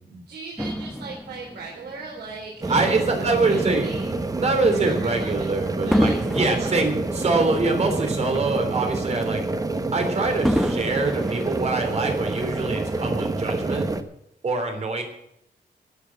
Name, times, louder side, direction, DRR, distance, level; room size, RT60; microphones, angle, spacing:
voice 1, 0.3-4.1 4.7-5.5 5.8-6.9, right 4 dB, 80° right, -2 dB, 3.7 m, -38 dB
Fireworks, 0.6-3.2 3.8-4.0 5.9-8.4 8.8-8.9 10.4-12.3 13.1-13.2, equal, ahead, 0.8 m, -28 dB
sound 1, 2.6-14.0, right 2 dB, 20° right, 1.1 m, -27 dB
voice 2, 2.7-3.9 4.3-9.4 9.9-13.9 14.4-15.0, right 3 dB, 40° right, 5 dB, 3.4 m, -24 dB
13.5 x 8.1 x 7.4 m, 0.78 s
wide cardioid pair, 150°, 17 cm